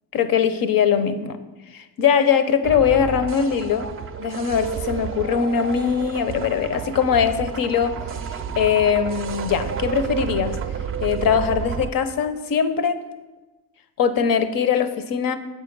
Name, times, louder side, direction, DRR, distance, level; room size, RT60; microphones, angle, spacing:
voice 1, 0.1-1.4 1.7-3.9 4.2-8.0 8.3-10.6 11.0-13.0 14.0-15.4, left 7 dB, 60° left, 11 dB, 0.7 m, -21 dB
sound 1, 2.6-11.9, right 7 dB, 35° right, 0.4 m, -30 dB
7.2 x 5.0 x 5.2 m, 1.2 s
cardioid pair, 110°, 39 cm